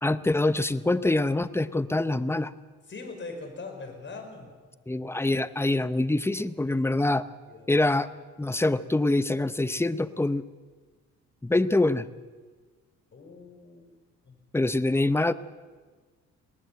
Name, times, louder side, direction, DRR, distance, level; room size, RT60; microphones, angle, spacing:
voice 1, 0.0-2.5 4.9-7.3 7.7-8.1 8.4-10.4 11.4-12.1 14.5-15.3, left 2 dB, 10° left, 14 dB, 0.9 m, -25 dB
voice 2, 2.9-4.5 6.7-7.0 7.4-7.8 13.1-13.9 14.3-14.4, left 3 dB, 40° left, 4 dB, 5.9 m, -42 dB
21.0 x 19.0 x 7.8 m, 1.4 s
cardioid pair, 90°, 30 cm